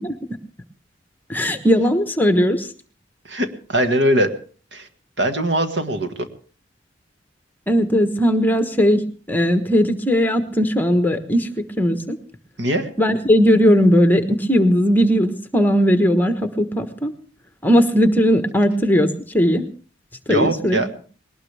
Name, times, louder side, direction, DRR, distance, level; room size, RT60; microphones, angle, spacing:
voice 1, 1.3-2.7 7.7-11.5 11.8-12.2 13.0-17.1 17.6-19.6 20.3-20.8, equal, 10° left, 7 dB, 1.2 m, -18 dB
voice 2, 3.3-4.3 4.7-4.9 5.2-6.3 12.6-12.9 20.3-20.9, right 1 dB, 65° right, 8 dB, 1.7 m, -21 dB
20.5 x 18.5 x 3.5 m, 0.41 s
head